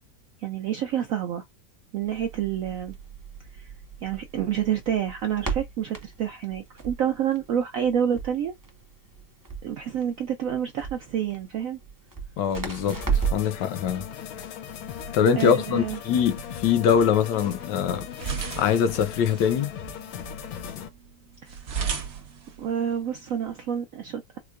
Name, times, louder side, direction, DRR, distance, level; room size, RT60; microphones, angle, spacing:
voice 1, 0.4-1.4 1.9-3.0 3.5-3.7 4.0-8.5 9.6-11.8 15.4-16.0 21.4-21.5 22.6-24.4, right 9 dB, 80° right, 0.7 m, -28 dB
Crackle, 2.0-13.6, right 6 dB, 25° right, 0.4 m, -34 dB
voice 2, 12.4-13.0 13.3-14.1 15.1-18.1 18.6-19.7, left 7 dB, 70° left, 1.3 m, -23 dB
sound 1, 12.9-20.9, left 8 dB, 90° left, 1.5 m, -38 dB
sound 2, 15.7-23.8, right 6 dB, 50° right, 0.9 m, -38 dB
4.6 x 2.1 x 2.4 m
omnidirectional pair, 2.0 m